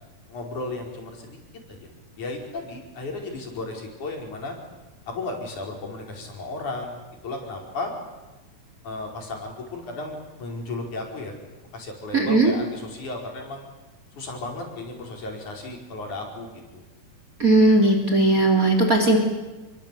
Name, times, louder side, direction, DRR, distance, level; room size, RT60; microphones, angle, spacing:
voice 1, 0.3-1.4 1.7-1.9 2.2-4.6 5.1-7.9 8.8-11.4 11.7-13.6 14.2-16.8, left 2 dB, 90° left, 1 dB, 6.4 m, -34 dB
voice 2, 12.1-12.5 17.4-19.2, right 2 dB, 30° right, 4 dB, 3.6 m, -18 dB
28.0 x 23.5 x 8.5 m, 1.1 s
omnidirectional pair, 3.4 m